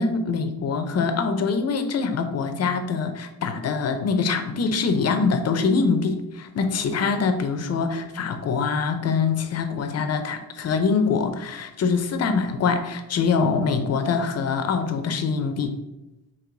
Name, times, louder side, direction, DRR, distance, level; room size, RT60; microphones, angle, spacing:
voice 1, 0.0-15.7, left 5 dB, 40° left, 7 dB, 0.5 m, -24 dB
4.6 x 2.9 x 3.8 m, 0.95 s
cardioid pair, 130°, 42 cm